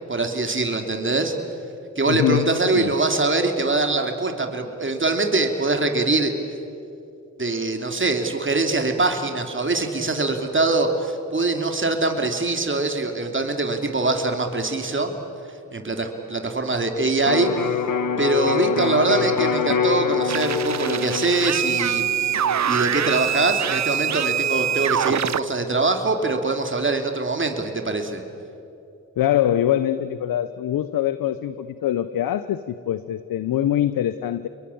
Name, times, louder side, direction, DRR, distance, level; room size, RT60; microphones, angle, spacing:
voice 1, 0.1-1.3 2.0-6.3 7.4-15.1 15.7-17.8 18.2-22.4 22.6-28.2, right 3 dB, 35° right, 5 dB, 3.2 m, -23 dB
voice 2, 2.1-2.9 29.2-34.5, left 11 dB, 90° left, 13 dB, 0.7 m, -23 dB
Electric guitar, 17.2-25.0, left 6 dB, 65° left, 1.6 m, -26 dB
sound 1, 20.3-25.4, right 9 dB, 55° right, 0.6 m, -24 dB
28.0 x 22.5 x 8.7 m, 2.7 s
supercardioid pair, 40°, 33 cm